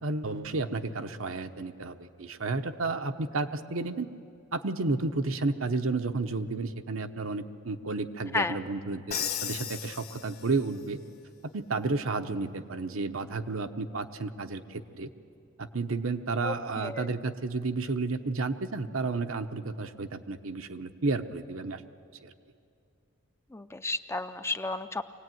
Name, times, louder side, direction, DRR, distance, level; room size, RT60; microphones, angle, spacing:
voice 1, 0.0-4.1 4.5-11.0 11.5-15.1 15.6-21.8 22.2-22.3, right 3 dB, 75° right, 7 dB, 1.0 m, -32 dB
Crash cymbal, 9.1-10.8, left 9 dB, 45° left, 1.5 m, -35 dB
voice 2, 16.4-17.1 23.5-25.0, left 3 dB, 15° left, 10 dB, 0.5 m, -32 dB
24.5 x 18.0 x 9.3 m, 2.4 s
head